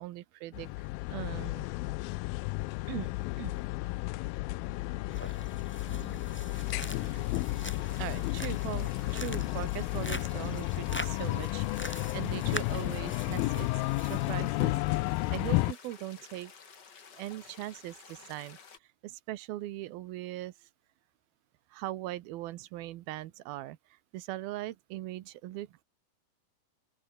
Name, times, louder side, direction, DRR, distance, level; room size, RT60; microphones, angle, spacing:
voice 1, 0.0-1.7 2.9-3.1 3.4-3.5 7.1-7.3 8.0-16.5 17.1-20.7 21.7-25.8, right 16 dB, 85° right, 2.8 m, -40 dB
sound 1, 0.5-15.7, left 21 dB, 80° left, 2.3 m, -32 dB
sound 2, 5.1-14.3, left 1 dB, 5° left, 1.6 m, -44 dB
sound 3, 6.5-18.8, left 6 dB, 35° left, 2.1 m, -53 dB
open air
omnidirectional pair, 4.3 m